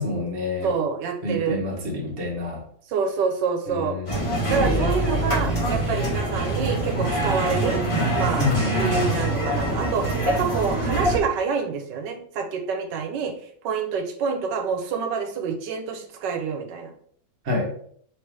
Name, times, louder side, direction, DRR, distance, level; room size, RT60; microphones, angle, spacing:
voice 1, 0.0-0.7 1.2-2.6 3.7-4.2 4.6-5.2 8.4-9.3 17.4-17.7, left 3 dB, 40° right, -1 dB, 1.1 m, -28 dB
voice 2, 0.6-1.6 2.9-4.0 4.5-7.8 8.1-16.9, right 5 dB, 85° right, 4 dB, 1.3 m, -27 dB
sound 1, 4.1-11.2, right 1 dB, 20° left, 1.1 m, -24 dB
3.2 x 3.2 x 4.6 m, 0.62 s
omnidirectional pair, 1.8 m